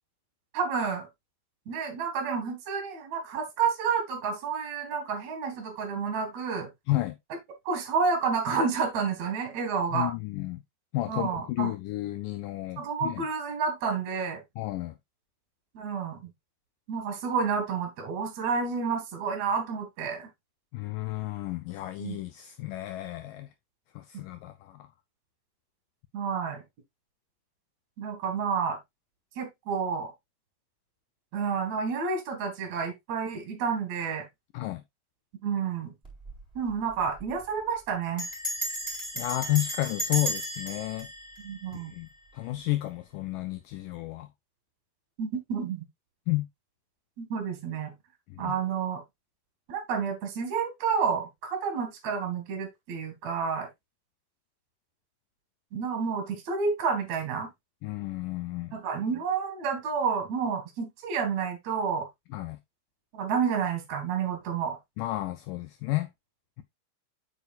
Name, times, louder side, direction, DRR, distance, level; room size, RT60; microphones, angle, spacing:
voice 1, 0.5-1.1 1.7-6.7 7.7-10.1 11.1-11.7 12.8-14.4 15.7-16.3 16.9-20.3 22.0-22.2 24.1-24.2 26.1-26.6 28.0-28.8 29.4-30.1 31.3-34.3 35.4-35.9 36.6-38.3 41.4-41.9 45.2-45.8 47.2-47.9 48.4-49.0 49.7-53.7 55.7-57.5 58.7-62.1 63.1-64.8, right 6 dB, 55° right, 2.6 m, -30 dB
voice 2, 9.9-10.6 10.9-13.3 14.6-15.0 20.7-23.5 24.0-24.9 34.5-34.8 39.2-41.1 41.9-42.1 42.3-44.3 46.3-46.5 48.3-48.6 57.8-58.7 62.3-62.6 65.0-66.1, left 17 dB, 85° left, 1.9 m, -32 dB
Bell, 36.0-36.4 36.7-36.8 37.0-37.4 38.2-42.3, equal, ahead, 3.4 m, -34 dB
8.2 x 6.6 x 2.4 m
omnidirectional pair, 4.5 m